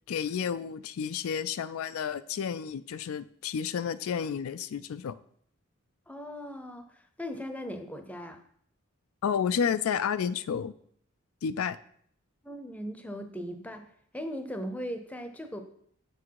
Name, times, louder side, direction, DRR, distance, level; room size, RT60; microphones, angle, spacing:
voice 1, 0.1-5.2 9.2-10.7 11.4-11.8, left 7 dB, 80° left, 13 dB, 0.4 m, -31 dB
voice 2, 6.1-8.4 12.4-13.9 14.1-15.6, equal, 5° left, 7 dB, 0.6 m, -38 dB
7.6 x 6.1 x 4.6 m, 0.65 s
head